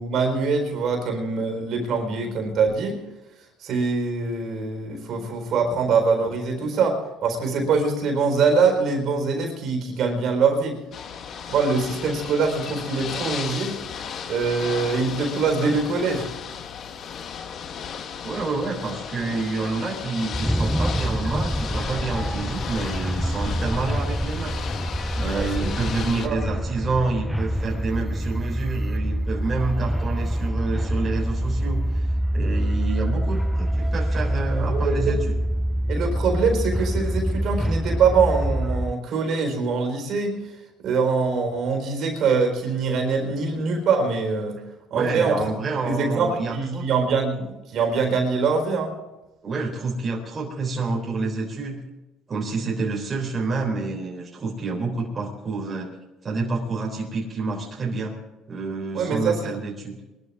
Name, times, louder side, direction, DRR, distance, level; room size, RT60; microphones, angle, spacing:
voice 1, 0.0-3.0 3.6-10.8 11.5-13.8 14.3-16.3 25.4-25.7 26.2-26.4 34.7-35.2 35.9-40.4 40.8-44.6 44.9-45.5 45.8-48.9 58.9-59.5, right 4 dB, 60° right, 3 dB, 4.4 m, -23 dB
Ocean / Boat Water vehicle, 10.9-26.3, left 7 dB, 50° left, 1.3 m, -35 dB
voice 2, 18.2-24.6 25.1-32.1 32.3-35.4 44.9-46.9 49.4-51.8 52.3-55.9 56.2-58.1 58.5-60.0, right 3 dB, 30° right, -2 dB, 3.7 m, -28 dB
sound 1, 20.3-38.9, equal, ahead, 0.4 m, -26 dB
22.5 x 13.0 x 3.6 m, 1.0 s
supercardioid pair, 95°, 0 cm